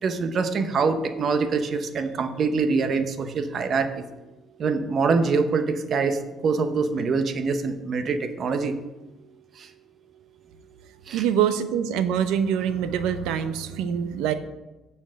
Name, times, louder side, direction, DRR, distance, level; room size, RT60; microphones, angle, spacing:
voice 1, 0.0-4.0 4.6-8.7 9.6-9.7 11.1-11.2, right 4 dB, 45° right, 8 dB, 0.8 m, -24 dB
voice 2, 11.1-14.3, right 8 dB, 90° right, 10 dB, 0.8 m, -24 dB
10.5 x 4.4 x 7.4 m, 1.1 s
cardioid pair, 130°, 0 cm